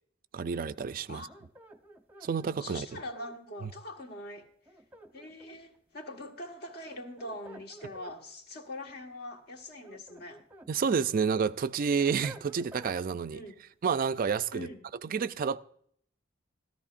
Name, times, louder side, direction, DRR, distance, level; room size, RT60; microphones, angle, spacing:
voice 1, 0.3-1.3 2.2-2.9 10.7-13.4 13.8-14.7 15.1-15.6, right 6 dB, 45° right, 0.4 m, -29 dB
sound 1, 1.3-3.4 4.7-5.8 6.9-8.2 9.6-10.7 11.2-13.0, right 1 dB, 10° right, 0.8 m, -51 dB
voice 2, 2.6-4.5 5.1-10.4 13.3-13.5 14.5-14.8, left 1 dB, 55° left, 1.5 m, -43 dB
14.0 x 13.5 x 2.5 m
head